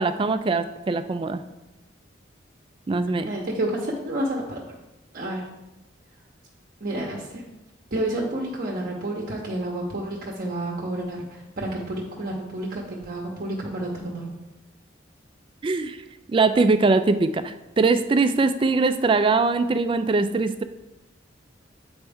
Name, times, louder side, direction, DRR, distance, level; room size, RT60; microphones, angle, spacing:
voice 1, 0.0-1.4 2.9-3.3 15.6-16.0 16.3-20.6, right 3 dB, 25° right, 10 dB, 0.3 m, -22 dB
voice 2, 3.2-4.6 5.1-5.5 6.8-7.4 7.9-14.3, right 1 dB, 50° right, -2 dB, 0.8 m, -30 dB
8.1 x 4.4 x 3.5 m, 0.99 s
head